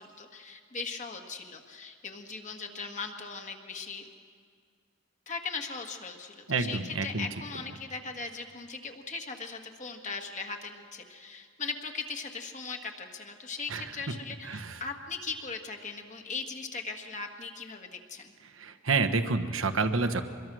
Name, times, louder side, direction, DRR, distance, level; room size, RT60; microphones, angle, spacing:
voice 1, 0.0-4.1 5.3-18.3, left 4 dB, 35° left, 4 dB, 1.7 m, -39 dB
voice 2, 6.5-7.3 13.7-13.9 14.5-14.8 18.6-20.2, right 3 dB, 70° right, 9 dB, 1.2 m, -28 dB
24.5 x 22.0 x 6.2 m, 2.1 s
head